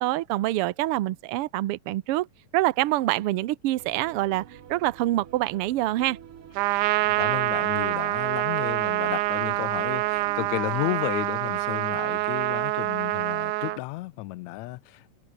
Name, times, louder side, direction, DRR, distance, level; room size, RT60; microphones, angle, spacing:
voice 1, 0.0-2.3 2.5-6.2, right 16 dB, 70° right, 1.4 m, -26 dB
sound 1, 3.8-10.9, right 8 dB, 50° right, 2.3 m, -49 dB
Trumpet, 6.6-13.8, right 20 dB, 85° right, 2.1 m, -26 dB
voice 2, 7.0-15.2, left 20 dB, 80° left, 1.8 m, -33 dB
omnidirectional pair, 3.4 m